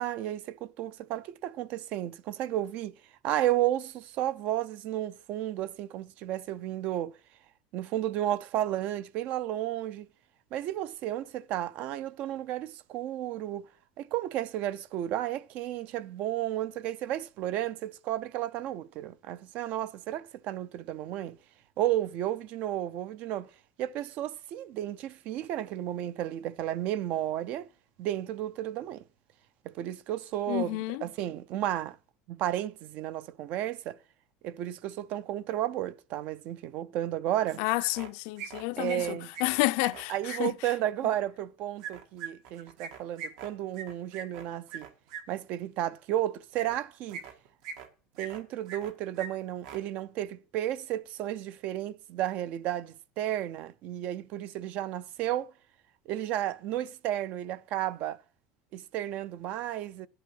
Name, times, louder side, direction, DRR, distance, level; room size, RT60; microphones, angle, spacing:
voice 1, 0.0-2.9 3.2-7.2 7.7-10.1 10.5-13.7 14.0-21.4 21.8-23.5 23.8-27.7 28.0-29.0 29.6-32.0 32.3-34.0 34.4-37.6 38.8-39.3 40.1-44.9 45.3-47.2 48.2-55.5 56.1-58.2 58.7-60.1, right 13 dB, 45° right, 0.5 m, -33 dB
voice 2, 30.5-31.0 37.6-40.5, left 21 dB, 65° left, 0.5 m, -30 dB
sound 1, 37.5-38.1 38.4-40.4 41.8-45.2 46.5-46.8 47.1-47.9 48.2-48.9 49.2-49.3 49.6-49.8, right 6 dB, 75° right, 1.8 m, -41 dB
10.0 x 7.8 x 6.4 m
cardioid pair, 170°, 3 cm